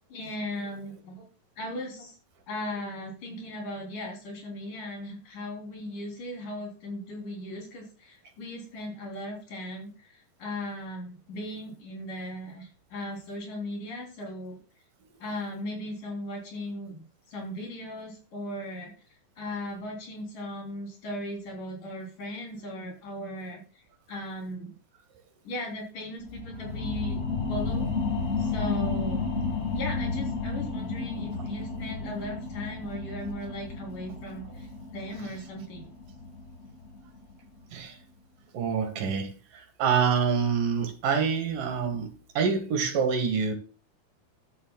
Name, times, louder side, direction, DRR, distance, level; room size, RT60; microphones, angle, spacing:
voice 1, 0.1-1.2 1.6-2.1 2.5-9.9 10.4-14.6 15.2-17.0 17.3-18.9 19.4-23.6 24.1-24.7 25.4-27.9 28.4-29.3 29.7-34.4 34.9-35.9, left 1 dB, 65° left, 5.0 m, -37 dB
sound 1, 26.2-37.3 37.8-37.9, left 4 dB, 90° left, 0.6 m, -32 dB
voice 2, 38.5-42.1 42.3-43.5, right 6 dB, 75° right, 3.3 m, -26 dB
14.0 x 10.0 x 2.3 m
omnidirectional pair, 3.9 m